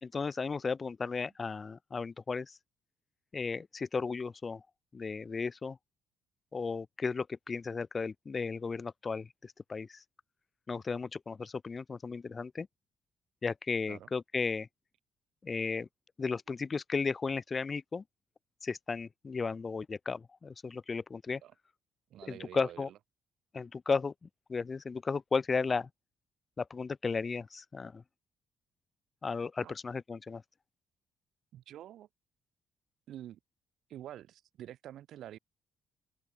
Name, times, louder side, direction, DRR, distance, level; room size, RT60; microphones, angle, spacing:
voice 1, 0.0-2.6 3.3-4.6 4.9-5.8 6.5-10.0 10.7-12.7 13.4-14.7 15.4-15.9 16.2-18.0 18.6-21.4 22.3-22.9 23.5-25.9 26.6-28.0 29.2-30.4, left 4 dB, 35° left, 0.9 m, -35 dB
voice 2, 22.1-22.9 29.6-29.7 31.5-32.1 33.1-33.4 33.9-35.4, right 12 dB, 70° right, 0.7 m, -47 dB
open air
supercardioid pair, 70°, 0 cm